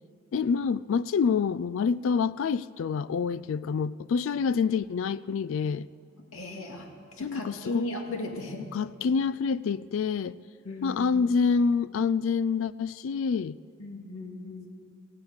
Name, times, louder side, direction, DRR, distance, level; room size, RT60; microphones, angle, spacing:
voice 1, 0.3-5.9 7.2-7.9 8.6-10.4 10.8-13.6, left 5 dB, 65° left, 17 dB, 0.3 m, -27 dB
voice 2, 6.3-6.9 7.2-8.6 10.6-11.0 13.8-14.7, left 2 dB, 80° left, 1 dB, 2.2 m, -36 dB
16.5 x 9.6 x 8.0 m, 2.4 s
head